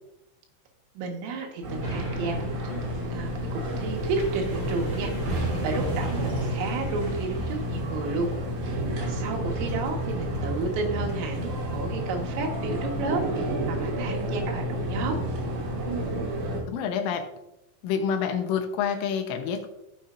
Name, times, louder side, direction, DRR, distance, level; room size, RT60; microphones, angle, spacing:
voice 1, 1.0-2.7 3.1-8.3 8.6-15.2, right 3 dB, 85° right, 2 dB, 4.2 m, -32 dB
sound 1, 1.6-16.6, right 1 dB, 60° right, 4.6 m, -30 dB
sound 2, 1.8-13.2 13.7-13.8, right 1 dB, 15° right, 3.6 m, -41 dB
voice 2, 16.7-17.3 17.8-19.7, left 7 dB, 80° left, 6 dB, 3.5 m, -27 dB
16.0 x 7.1 x 2.6 m, 0.87 s
omnidirectional pair, 5.7 m